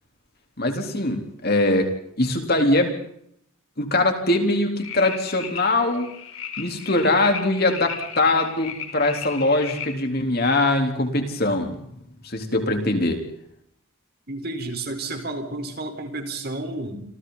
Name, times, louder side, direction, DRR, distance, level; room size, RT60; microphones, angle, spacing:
voice 1, 0.6-1.9 2.2-2.9 3.8-6.1 6.6-11.8 12.2-13.2, left 2 dB, 45° left, 4 dB, 3.7 m, -22 dB
sound 1, 4.8-9.9, left 7 dB, 70° left, 4.4 m, -36 dB
voice 2, 14.3-17.0, right 2 dB, 45° right, 6 dB, 4.2 m, -31 dB
28.5 x 27.5 x 4.1 m, 0.71 s
head